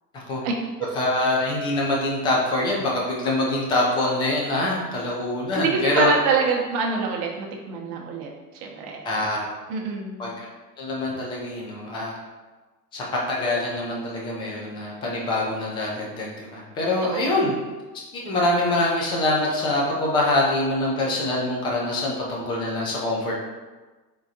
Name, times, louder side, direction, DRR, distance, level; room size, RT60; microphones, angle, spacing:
voice 1, 1.0-6.1 9.0-9.4 10.2-10.5 10.8-12.1 12.9-17.5 18.1-23.3, left 2 dB, 10° left, -3 dB, 0.4 m, -24 dB
voice 2, 5.5-9.1 9.7-10.2 17.0-17.3, right 4 dB, 35° right, 0 dB, 0.9 m, -26 dB
4.9 x 3.7 x 2.7 m, 1.3 s
hypercardioid pair, 115°, 49 cm